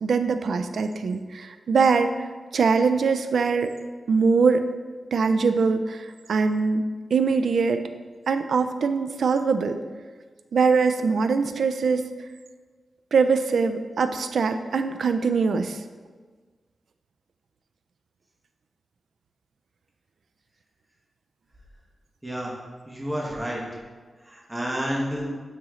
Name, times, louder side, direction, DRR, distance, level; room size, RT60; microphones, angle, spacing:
voice 1, 0.0-3.7 4.1-4.7 5.1-7.8 8.3-9.8 10.5-12.0 13.1-15.8, right 5 dB, 75° right, 9 dB, 0.3 m, -22 dB
voice 2, 22.2-22.5 22.9-23.6 24.2-25.3, equal, 10° right, -4 dB, 1.2 m, -30 dB
9.1 x 3.1 x 3.7 m, 1.4 s
wide cardioid pair, 175°, 0 cm